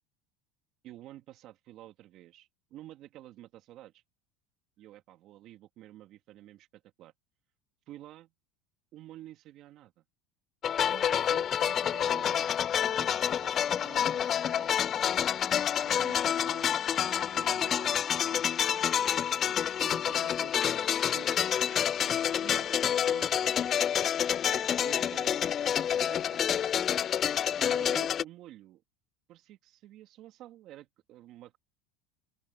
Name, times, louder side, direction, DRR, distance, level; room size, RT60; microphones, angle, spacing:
voice 1, 0.8-4.0 4.8-7.1 7.9-8.3 8.9-10.0 10.8-12.5 12.9-14.9 15.6-19.2 19.8-21.6 22.1-23.7 24.8-25.4 25.9-26.6 27.5-28.8 29.3-31.6, right 14 dB, 50° right, 3.0 m, -50 dB
sound 1, 10.6-28.2, left 9 dB, 30° left, 0.4 m, -28 dB
open air
supercardioid pair, 130°, 0 cm